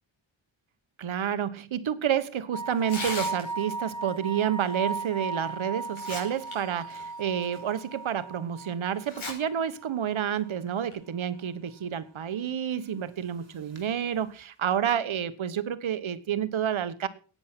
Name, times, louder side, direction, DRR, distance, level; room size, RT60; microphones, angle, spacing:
voice 1, 1.0-17.1, right 9 dB, 80° right, 1.3 m, -29 dB
sound 1, 2.5-10.2 10.5-10.6 13.8-13.9, right 3 dB, 35° right, 3.1 m, -37 dB
Tearing, 2.8-3.8 5.2-5.3 5.8-6.5 6.9-7.0 7.7-7.8 9.0-9.3 9.7-9.8 10.7-10.9, left 3 dB, 80° left, 5.9 m, -36 dB
15.5 x 9.6 x 6.1 m
wide cardioid pair, 140°, 47 cm